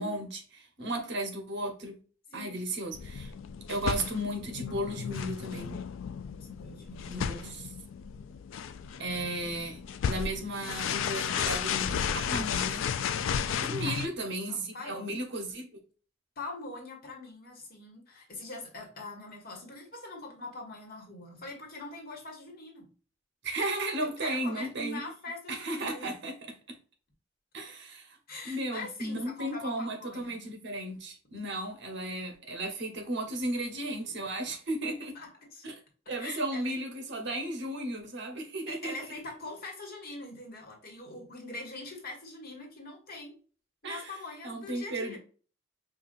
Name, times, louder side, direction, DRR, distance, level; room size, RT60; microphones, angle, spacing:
voice 1, 0.0-2.0 2.3-3.3 3.7-5.8 7.1-7.6 9.0-9.8 10.1-12.8 13.6-15.7 23.4-25.0 25.5-26.3 27.5-28.2 28.4-35.1 35.6-35.8 36.1-38.9 43.8-44.1 44.4-45.2, right 1 dB, 65° right, 1.1 m, -34 dB
sound 1, 2.9-14.1, left 7 dB, 75° left, 0.3 m, -34 dB
voice 2, 6.3-7.6 9.3-9.5 13.6-14.0 14.5-15.1 16.4-22.9 24.0-26.1 28.3-30.4 31.3-31.4 35.0-35.7 36.2-36.7 38.7-43.3 43.8-45.2, left 2 dB, 50° left, 1.3 m, -43 dB
5.1 x 2.4 x 2.5 m
head